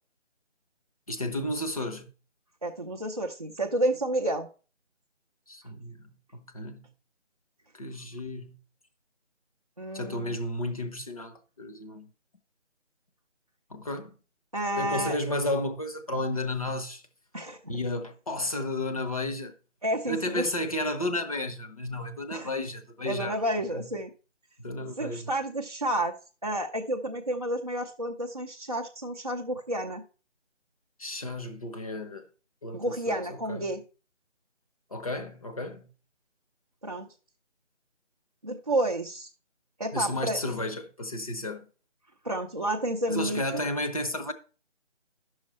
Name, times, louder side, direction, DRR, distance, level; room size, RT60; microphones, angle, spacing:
voice 1, 1.1-2.1 5.5-6.9 7.7-8.6 9.9-12.1 13.7-14.1 14.8-17.0 17.7-19.5 20.1-23.4 23.7-23.9 24.6-25.3 31.0-32.3 32.6-33.7 34.9-35.9 39.9-41.7 43.1-44.3, left 1 dB, 30° left, 0.9 m, -33 dB
voice 2, 2.6-4.5 9.8-10.4 14.5-15.2 17.3-17.6 19.8-20.5 22.3-22.5 23.1-24.1 25.0-26.1 26.4-30.0 32.7-33.8 36.8-37.1 38.4-39.3 39.8-40.4 42.2-43.6, right 1 dB, 30° right, 0.6 m, -30 dB
10.0 x 6.4 x 4.3 m
figure-of-eight pair, 160°, 36 cm